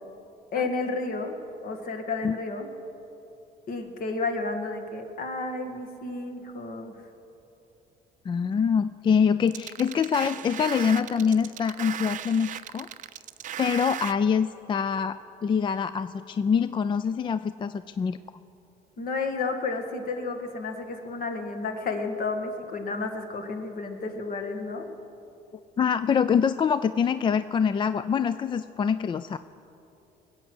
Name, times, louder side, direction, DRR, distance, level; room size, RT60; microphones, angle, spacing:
voice 1, 0.5-1.3 1.6-2.7 3.7-6.9 19.0-24.8, left 3 dB, 55° left, 5 dB, 1.8 m, -31 dB
voice 2, 8.3-12.9 13.6-18.2 25.8-29.4, left 6 dB, 30° left, 13 dB, 0.3 m, -25 dB
sound 1, 9.5-14.1, right 10 dB, 50° right, 0.5 m, -36 dB
20.5 x 8.2 x 7.9 m, 2.8 s
cardioid pair, 110°, 17 cm